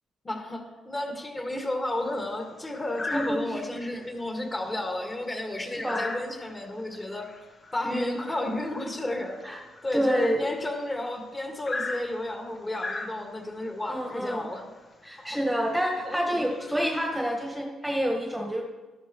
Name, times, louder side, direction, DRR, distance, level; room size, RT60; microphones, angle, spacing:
voice 1, 0.2-7.3 7.7-9.4 9.8-14.6 15.2-15.4 16.0-16.4, left 1 dB, 20° left, 2 dB, 2.2 m, -32 dB
sound 1, 1.8-2.2 3.0-3.8 4.2-4.4 4.7-10.9 11.7-13.6 14.5-14.7 15.1-15.2 15.7-15.9 16.4-17.5, left 3 dB, 35° left, 1.3 m, -39 dB
voice 2, 3.1-3.6 5.8-6.0 7.8-8.2 9.4-9.6 9.9-10.4 13.9-14.5 15.0-18.7, equal, 5° right, 0 dB, 1.6 m, -28 dB
13.0 x 12.0 x 3.2 m, 1.2 s
cardioid pair, 90°, 0 cm